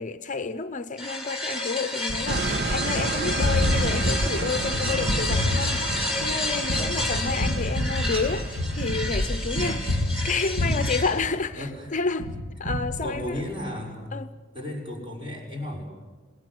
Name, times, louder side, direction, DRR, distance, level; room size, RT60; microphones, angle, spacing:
voice 1, 0.0-12.3 12.6-13.4 14.1-14.3, left 4 dB, 40° left, 0.7 m, -30 dB
sound 1, 1.0-11.2, left 1 dB, 5° right, 6.3 m, -31 dB
Gunshot gunfire, 2.1-11.8 12.2-13.6, left 1 dB, 70° right, 5.6 m, -29 dB
sound 2, 2.3-10.6, right 2 dB, 55° right, 1.2 m, -31 dB
voice 2, 6.7-7.2 9.6-9.8 11.5-11.9 13.0-14.1 14.5-15.9, left 1 dB, 25° right, 6.2 m, -35 dB
27.0 x 20.0 x 7.7 m
head